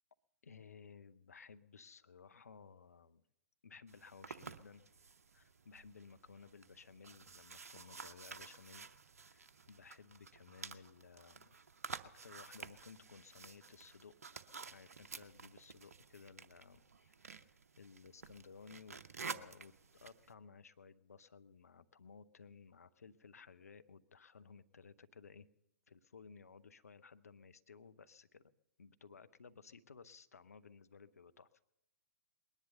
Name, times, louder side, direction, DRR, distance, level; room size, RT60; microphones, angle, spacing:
voice 1, 0.4-3.2 3.6-4.9 5.3-8.9 9.2-11.5 12.2-19.0 19.2-25.5 25.9-28.5 28.8-31.5, left 5 dB, 70° left, 12 dB, 0.6 m, -58 dB
sound 1, 3.9-20.3, right 5 dB, 65° right, 0.7 m, -52 dB
20.0 x 10.5 x 6.7 m, 0.84 s
figure-of-eight pair, 115°, 9 cm